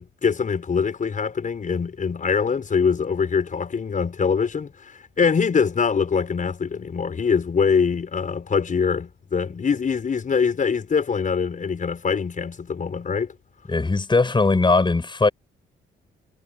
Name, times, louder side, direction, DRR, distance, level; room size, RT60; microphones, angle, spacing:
voice 1, 0.0-4.7 5.2-13.3, left 6 dB, 40° left, 5.8 m, -23 dB
voice 2, 13.7-15.3, left 3 dB, 25° left, 6.5 m, -19 dB
cardioid pair, 90°, 20 cm